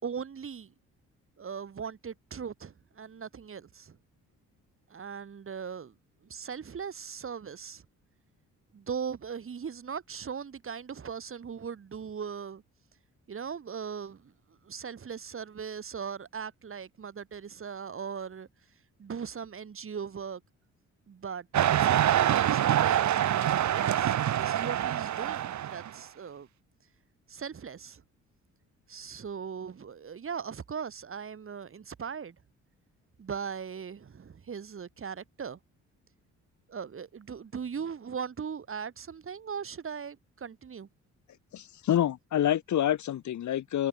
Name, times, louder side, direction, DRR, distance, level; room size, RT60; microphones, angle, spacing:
voice 1, 0.0-0.7 1.4-4.0 4.9-5.9 6.2-7.8 8.7-12.6 13.3-14.3 14.6-18.5 19.0-20.4 21.1-26.5 27.3-28.0 28.9-32.3 33.2-35.6 36.7-40.9, right 6 dB, 45° right, 6.0 m, -39 dB
sound 1, 21.5-25.9, right 11 dB, 65° right, 2.7 m, -25 dB
voice 2, 41.5-43.9, left 11 dB, 70° left, 5.2 m, -27 dB
cardioid pair, 90°, 30 cm